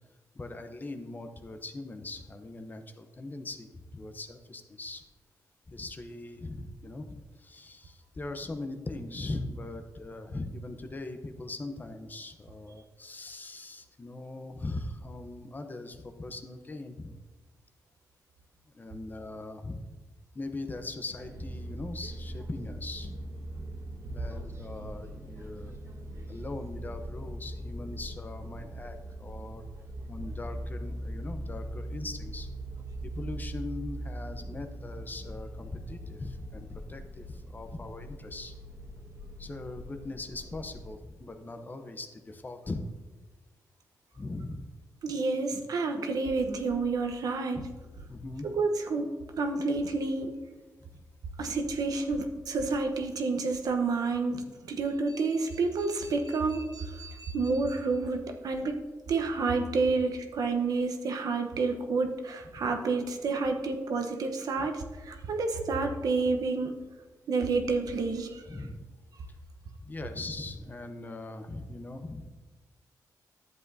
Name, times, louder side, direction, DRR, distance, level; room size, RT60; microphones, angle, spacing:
voice 1, 0.3-5.0 5.7-17.2 18.7-20.0 20.3-23.1 24.1-25.7 26.3-29.6 30.1-32.5 33.0-38.5 39.4-43.0 44.2-44.7 47.5-47.6 47.9-48.5 50.8-51.0 62.5-62.7 64.6-64.7 68.5-68.8 69.8-72.3, left 2 dB, 25° left, 7 dB, 0.8 m, -40 dB
sound 1, 21.2-41.0, right 1 dB, 45° right, 1.4 m, -41 dB
voice 2, 45.0-47.7 48.4-49.1 49.4-50.3 51.4-58.8 59.1-66.7 67.3-68.5, right 3 dB, 70° right, 5 dB, 1.0 m, -29 dB
11.0 x 7.7 x 2.7 m, 1.2 s
cardioid pair, 85°, 7 cm